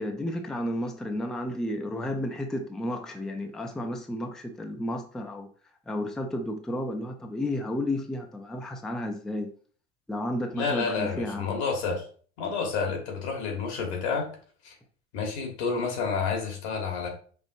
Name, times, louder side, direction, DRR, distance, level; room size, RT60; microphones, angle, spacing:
voice 1, 0.0-5.5 5.9-9.5 10.1-11.6, left 1 dB, ahead, 0.4 m, -32 dB
voice 2, 10.5-12.0 12.4-14.3 14.6-14.7 15.1-17.1, left 5 dB, 85° left, 1.4 m, -29 dB
5.4 x 2.5 x 2.6 m
supercardioid pair, 105°, 32 cm